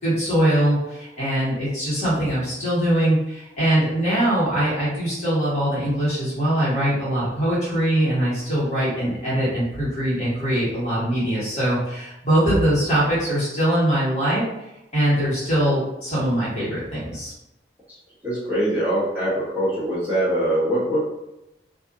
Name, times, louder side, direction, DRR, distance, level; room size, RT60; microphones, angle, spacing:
voice 1, 0.0-14.4 14.9-17.3, right 1 dB, 40° left, -9 dB, 1.5 m, -22 dB
voice 2, 18.2-21.0, right 1 dB, 10° right, -12 dB, 1.2 m, -23 dB
2.7 x 2.5 x 2.4 m, 0.90 s
head